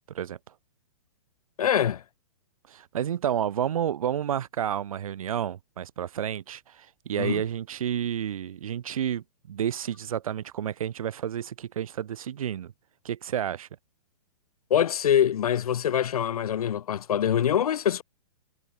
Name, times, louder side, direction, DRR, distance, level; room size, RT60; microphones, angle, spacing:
voice 1, 1.6-2.0 7.2-7.4 14.7-18.0, left 9 dB, 80° left, 1.3 m, -24 dB
voice 2, 2.7-12.7 13.0-13.7, right 10 dB, 65° right, 2.6 m, -30 dB
hypercardioid pair, 170°, 19 cm